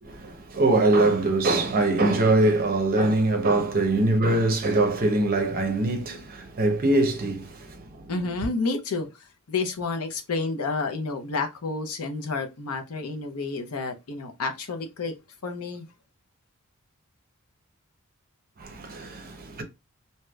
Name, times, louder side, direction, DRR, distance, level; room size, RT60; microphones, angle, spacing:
voice 1, 0.0-8.1 18.6-19.6, right 2 dB, 40° right, 0.7 m, -23 dB
voice 2, 8.1-15.1 15.4-15.9, left 3 dB, 75° left, 0.7 m, -30 dB
3.2 x 2.8 x 2.3 m
head